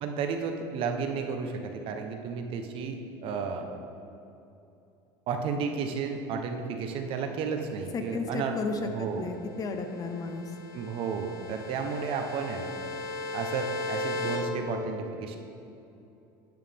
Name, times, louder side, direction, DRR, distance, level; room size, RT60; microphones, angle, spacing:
voice 1, 0.0-3.7 5.3-8.6 8.9-9.3 10.7-12.7 13.3-15.4, right 5 dB, 55° right, 5 dB, 1.0 m, -32 dB
voice 2, 7.9-10.5, left 3 dB, 35° left, 6 dB, 0.8 m, -33 dB
sound 1, 9.4-14.4, left 3 dB, 80° left, 2.2 m, -37 dB
10.5 x 9.1 x 3.6 m, 2.8 s
supercardioid pair, 115°, 11 cm